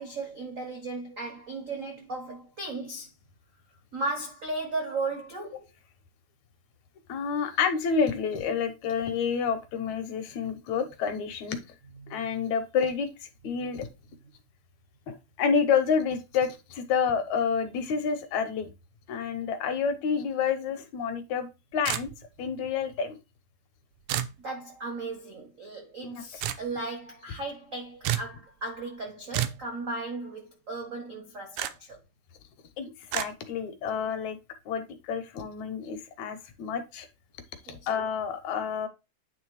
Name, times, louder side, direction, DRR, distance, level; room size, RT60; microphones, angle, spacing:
voice 1, 0.0-3.1 3.9-5.6 12.0-12.2 24.4-32.0 37.7-37.8, right 3 dB, 70° right, 0.7 m, -36 dB
voice 2, 7.1-11.6 12.1-13.9 15.1-18.7 19.1-21.5 21.7-22.1 22.4-23.2 26.0-26.1 32.8-34.4 34.7-37.1 37.7-38.9, left 6 dB, 75° left, 2.3 m, -29 dB
sound 1, 21.9-22.4 24.1-24.4 26.4-26.6 28.0-28.3 29.3-29.6 31.6-31.7 33.1-33.3, right 12 dB, 85° right, 2.1 m, -30 dB
9.3 x 3.3 x 4.8 m
omnidirectional pair, 3.4 m